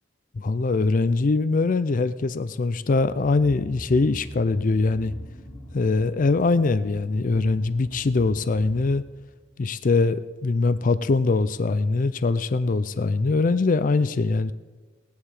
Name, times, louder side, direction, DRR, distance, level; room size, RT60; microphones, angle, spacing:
voice 1, 0.4-5.1 5.7-9.0 9.6-14.5, left 3 dB, 45° left, 15 dB, 0.4 m, -22 dB
sound 1, 2.9-9.4, equal, 20° left, 1.6 m, -42 dB
17.5 x 10.5 x 4.9 m, 1.3 s
head